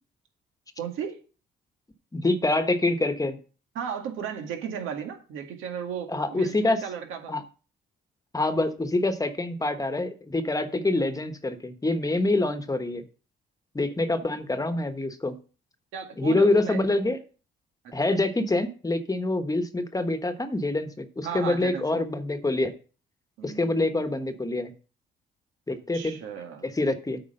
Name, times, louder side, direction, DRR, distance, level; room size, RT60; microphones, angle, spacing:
voice 1, 0.8-1.2 3.8-7.3 14.2-14.3 15.9-16.8 18.1-18.2 21.2-21.8 23.4-24.0 25.9-26.7, right 7 dB, 90° right, 4 dB, 1.9 m, -35 dB
voice 2, 2.1-3.4 6.1-6.8 7.3-7.4 8.3-13.0 13.7-15.3 16.2-17.2 17.9-22.7 23.4-24.7 25.7-26.2 26.6-27.2, left 2 dB, 15° left, 9 dB, 1.2 m, -26 dB
8.5 x 4.9 x 6.5 m, 0.37 s
cardioid pair, 90°, 20 cm